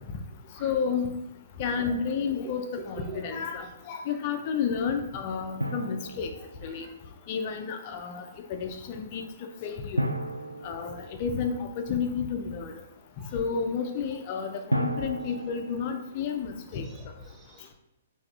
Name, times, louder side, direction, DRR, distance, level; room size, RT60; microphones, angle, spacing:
voice 1, 0.6-1.1 1.6-6.3 6.6-6.8 7.3-8.2 8.6-9.2 9.6-10.1 10.6-12.7 13.3-16.9, left 6 dB, 40° left, 5 dB, 0.3 m, -31 dB
voice 2, 2.4-3.3 4.1-4.4 6.4-7.0 8.2-8.4 13.2-13.4 14.1-14.2 14.5-14.6 15.2-15.5 16.7-17.7, right 5 dB, 20° right, 2 dB, 0.5 m, -48 dB
Drum, 5.6-7.1 10.0-11.8 14.7-16.3, right 1 dB, 90° right, 0.3 m, -33 dB
4.6 x 2.6 x 2.3 m, 0.92 s
figure-of-eight pair, 115°, 0 cm